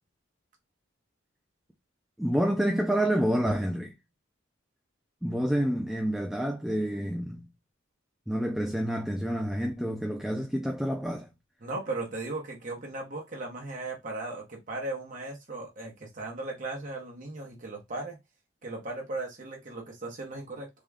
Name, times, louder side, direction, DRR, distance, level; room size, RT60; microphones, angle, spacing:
voice 1, 2.2-3.9 5.2-7.4 8.3-11.3, equal, ahead, 0.3 m, -28 dB
voice 2, 11.6-18.2 18.6-20.7, right 2 dB, 40° right, 0.8 m, -37 dB
3.5 x 2.2 x 3.4 m
head